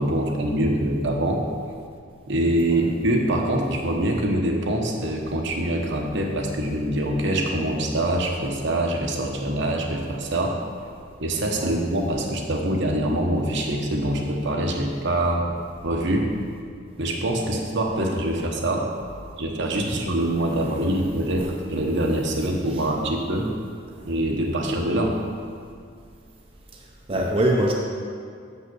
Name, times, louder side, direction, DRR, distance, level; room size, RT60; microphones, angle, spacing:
voice 1, 0.0-1.5 2.3-10.6 11.2-15.5 15.8-16.3 17.0-18.9 19.4-23.5 24.1-25.2 27.1-27.2, right 1 dB, 65° right, 1 dB, 1.0 m, -24 dB
voice 2, 27.1-27.7, right 1 dB, 30° right, -1 dB, 0.7 m, -24 dB
6.9 x 5.5 x 6.2 m, 2.3 s
head